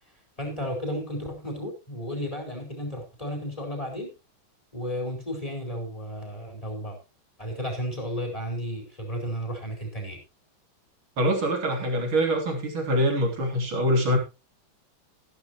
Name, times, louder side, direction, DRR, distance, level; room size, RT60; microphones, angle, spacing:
voice 1, 0.4-4.1 4.7-7.0 7.4-10.2, equal, 15° left, 2 dB, 4.8 m, -33 dB
voice 2, 11.2-14.2, equal, 80° right, 3 dB, 4.1 m, -24 dB
14.5 x 12.5 x 3.0 m, 0.28 s
omnidirectional pair, 2.2 m